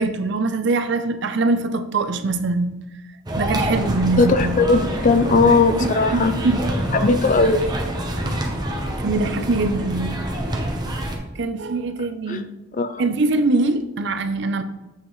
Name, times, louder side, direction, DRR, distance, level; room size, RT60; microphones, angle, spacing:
voice 1, 0.0-2.8 3.4-4.7 5.8-6.7 9.0-10.2 11.4-12.5 13.0-14.6, right 3 dB, 60° right, 9 dB, 0.6 m, -23 dB
sound 1, 3.3-11.2, right 1 dB, 20° right, 0.9 m, -26 dB
voice 2, 4.2-6.3 6.9-7.6 12.3-12.4 12.7-13.0, left 3 dB, 40° left, 9 dB, 0.5 m, -18 dB
7.3 x 6.3 x 3.1 m, 0.98 s
head